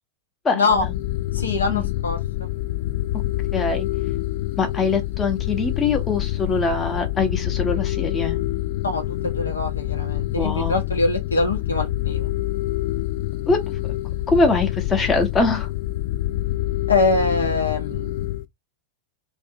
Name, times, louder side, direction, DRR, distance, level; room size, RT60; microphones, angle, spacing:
voice 1, 0.5-0.8 1.3-2.5 8.8-12.3 16.9-18.1, left 3 dB, 75° left, 0.8 m, -23 dB
sound 1, 0.7-18.4, left 15 dB, 50° left, 0.4 m, -26 dB
voice 2, 3.5-3.9 4.6-8.4 10.4-10.7 13.5-13.6 14.3-15.7, left 3 dB, 20° left, 0.7 m, -22 dB
2.6 x 2.1 x 2.6 m
figure-of-eight pair, 90°, 0 cm